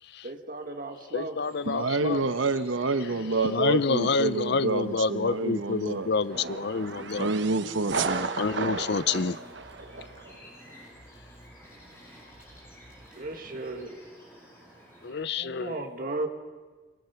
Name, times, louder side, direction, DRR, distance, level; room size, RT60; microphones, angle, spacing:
voice 1, 0.2-1.4 2.2-2.3 13.1-14.0 15.1-16.3, right 2 dB, 45° right, 2.0 m, -36 dB
voice 2, 1.1-2.2 3.4-7.3 8.4-9.4 15.0-15.8, left 4 dB, 60° left, 0.6 m, -28 dB
sound 1, 1.4-15.1, equal, 15° left, 7.5 m, -53 dB
voice 3, 1.6-6.1 7.2-8.3, right 3 dB, 85° right, 1.2 m, -28 dB
sound 2, 6.3-10.4, right 4 dB, 60° right, 1.1 m, -34 dB
sound 3, 8.4-13.8, equal, 5° right, 6.6 m, -54 dB
24.5 x 22.5 x 6.0 m
head